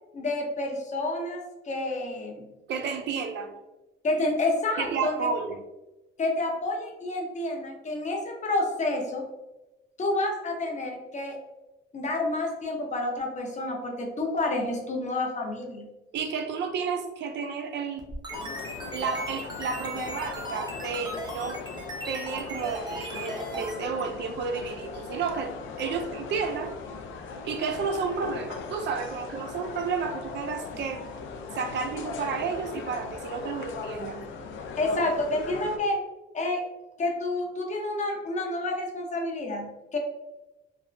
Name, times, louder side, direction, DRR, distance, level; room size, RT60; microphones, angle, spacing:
voice 1, 0.1-2.5 4.0-5.1 6.2-9.2 10.0-11.4 11.9-15.9 34.8-36.0 36.3-36.6 37.0-40.0, left 2 dB, 35° left, 1 dB, 0.7 m, -29 dB
voice 2, 2.7-3.5 4.8-5.6 16.1-18.1 18.9-21.6 22.1-26.7 27.4-31.0 31.5-34.3, right 5 dB, 65° right, 6 dB, 0.4 m, -31 dB
sound 1, 18.0-23.8, right 1 dB, 20° right, 0.7 m, -38 dB
sound 2, 18.3-35.8, left 5 dB, 75° left, 0.4 m, -39 dB
3.3 x 2.0 x 2.5 m, 1.0 s
cardioid pair, 90°, 20 cm